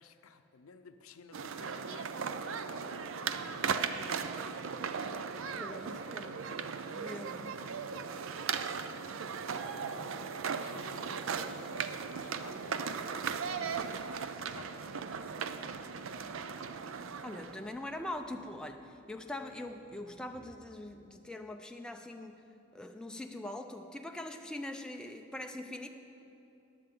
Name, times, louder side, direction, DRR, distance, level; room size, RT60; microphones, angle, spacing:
voice 1, 0.0-4.0 4.7-6.4 7.4-7.6 8.3-8.5 8.8-9.0 9.5-12.8 13.1-15.4, left 5 dB, 80° left, 9 dB, 0.6 m, -55 dB
sound 1, 1.3-17.8, right 6 dB, 70° right, 0.5 m, -37 dB
voice 2, 3.4-3.7 5.6-6.3 6.9-7.4 17.2-22.4 22.7-25.9, left 1 dB, 5° left, 4 dB, 0.4 m, -42 dB
sound 2, 11.2-20.6, equal, 50° right, 1.8 m, -63 dB
14.5 x 11.0 x 3.8 m, 2.9 s
head